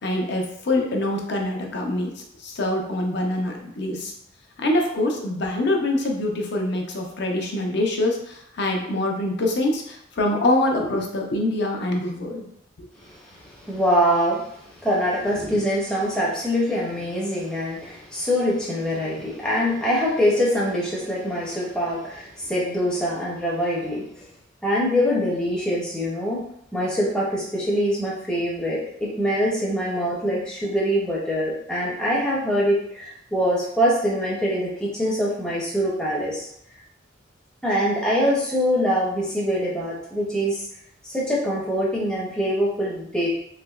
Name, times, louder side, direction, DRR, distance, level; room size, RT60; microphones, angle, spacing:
voice 1, 0.0-4.1 4.6-12.4 12.8-12.9, left 1 dB, 60° left, 1 dB, 0.6 m, -25 dB
voice 2, 13.0-24.3 24.6-26.4 26.7-36.5 37.6-40.7 41.0-43.3, equal, 5° left, -6 dB, 0.5 m, -24 dB
3.3 x 2.8 x 2.3 m, 0.73 s
head